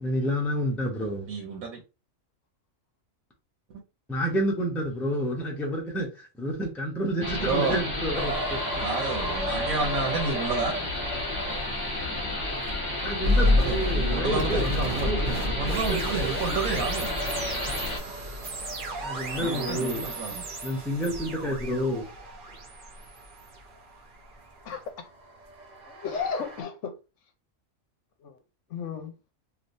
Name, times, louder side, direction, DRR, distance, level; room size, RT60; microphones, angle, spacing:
voice 1, 0.0-1.3 4.1-8.8 13.0-16.0 19.0-20.0 20.6-22.1, equal, ahead, 0.5 m, -29 dB
voice 2, 1.3-1.8 3.7-3.8 7.4-7.8 8.8-10.8 13.5-17.1 19.4-20.4, right 4 dB, 85° right, 1.3 m, -30 dB
sound 1, 7.2-18.0, left 2 dB, 20° left, 1.1 m, -32 dB
sound 2, 8.1-23.7 24.0-26.6, right 1 dB, 60° right, 0.4 m, -38 dB
sound 3, 13.2-24.3, left 1 dB, 45° right, 0.8 m, -30 dB
voice 3, 24.7-25.1 25.9-26.9 28.2-28.4 28.7-29.1, left 6 dB, 65° left, 0.9 m, -33 dB
3.3 x 2.7 x 2.6 m
omnidirectional pair, 1.4 m